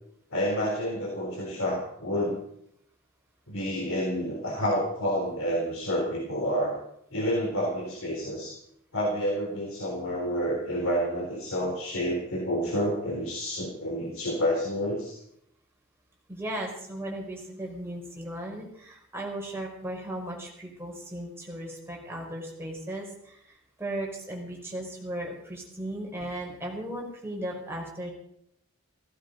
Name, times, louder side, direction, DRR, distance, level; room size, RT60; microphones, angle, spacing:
voice 1, 0.3-2.4 3.5-6.8 7.1-8.6 8.9-15.2, equal, 80° left, -2 dB, 3.9 m, -29 dB
voice 2, 16.3-28.1, right 1 dB, 10° right, -1 dB, 4.9 m, -36 dB
16.5 x 15.0 x 5.2 m, 0.73 s
head